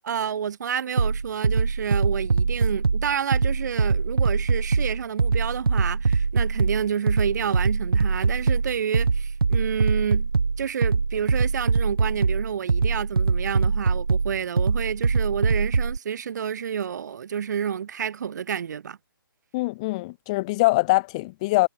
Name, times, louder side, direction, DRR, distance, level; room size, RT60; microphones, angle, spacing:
voice 1, 0.0-10.3 10.6-19.0, right 8 dB, 50° right, 1.4 m, -29 dB
sound 1, 1.0-16.0, right 4 dB, 85° right, 1.4 m, -23 dB
voice 2, 19.5-21.7, left 21 dB, 15° left, 0.4 m, -23 dB
hypercardioid pair, 155°, 12 cm